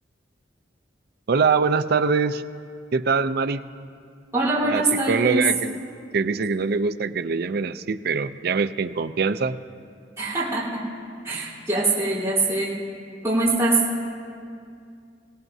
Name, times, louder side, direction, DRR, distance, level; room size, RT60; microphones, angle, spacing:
voice 1, 1.3-2.4 2.9-3.6 4.6-5.8 6.1-9.6, right 5 dB, 60° right, 11 dB, 0.5 m, -23 dB
voice 2, 4.3-5.4 10.2-10.8 11.2-12.8 13.2-13.8, right 2 dB, 15° right, -8 dB, 3.9 m, -23 dB
25.0 x 17.5 x 2.7 m, 2.3 s
head